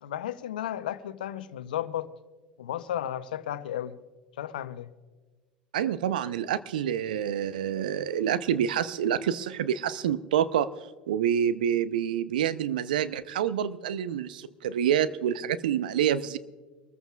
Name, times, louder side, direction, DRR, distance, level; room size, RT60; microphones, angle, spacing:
voice 1, 0.0-2.1 2.6-4.0 4.4-4.9, left 11 dB, 75° left, 0.7 m, -33 dB
voice 2, 5.7-10.7 11.1-16.4, right 9 dB, 75° right, 0.7 m, -27 dB
24.5 x 14.5 x 2.4 m
hypercardioid pair, 75°, 5 cm